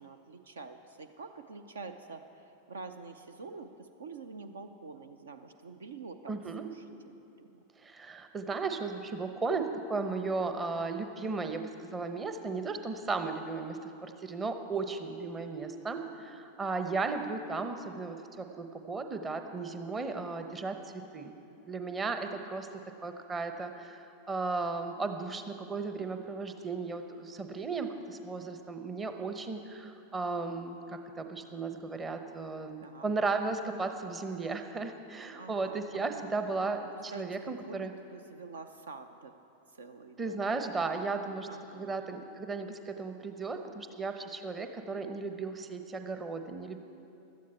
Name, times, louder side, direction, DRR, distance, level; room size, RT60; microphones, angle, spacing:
voice 1, 0.0-7.6 32.8-33.1 35.4-36.3 36.9-39.4 39.7-40.5 41.5-42.0, right 4 dB, 65° right, 9 dB, 0.6 m, -47 dB
voice 2, 6.3-6.7 7.8-21.3 21.7-22.7 23.0-37.9 40.2-41.5 41.7-46.8, right 4 dB, 20° right, 7 dB, 0.9 m, -35 dB
16.0 x 12.5 x 4.3 m, 2.8 s
figure-of-eight pair, 90°, 0 cm